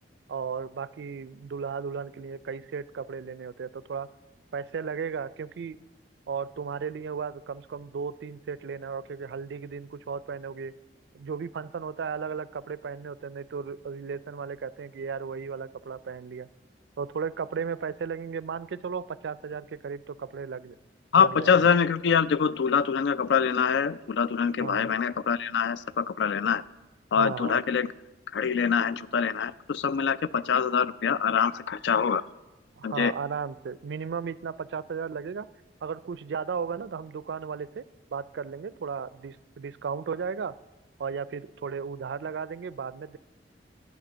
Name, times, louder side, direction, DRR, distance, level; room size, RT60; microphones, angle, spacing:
voice 1, 0.3-4.1 4.5-5.8 6.3-10.7 11.1-16.5 17.0-20.8 21.1-21.7 24.6-24.9 27.2-27.6 32.8-35.5 35.8-37.8 38.1-40.6 41.0-43.2, right 6 dB, 75° right, 17 dB, 0.4 m, -35 dB
voice 2, 21.1-26.6 27.1-27.9 28.3-32.2 32.8-33.1, left 6 dB, 75° left, 17 dB, 0.4 m, -24 dB
12.0 x 9.2 x 6.2 m, 1.1 s
head